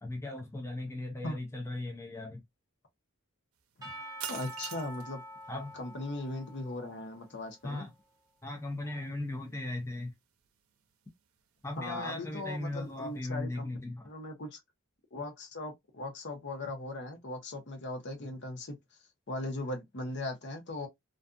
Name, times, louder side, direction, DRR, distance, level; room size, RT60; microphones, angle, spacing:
voice 1, 0.0-2.4 5.5-5.7 7.6-7.9 8.4-10.1 11.6-14.0 15.2-15.3 18.2-18.3, left 2 dB, 15° left, 0.5 m, -38 dB
sound 1, 3.6-13.2, right 9 dB, 75° right, 0.5 m, -50 dB
Percussion / Church bell, 3.8-7.7, equal, 15° right, 1.0 m, -47 dB
voice 2, 4.3-5.2 5.7-7.9 11.8-13.7 14.0-14.6 15.1-18.8 19.3-20.9, left 2 dB, 55° left, 0.8 m, -38 dB
2.4 x 2.3 x 2.5 m
head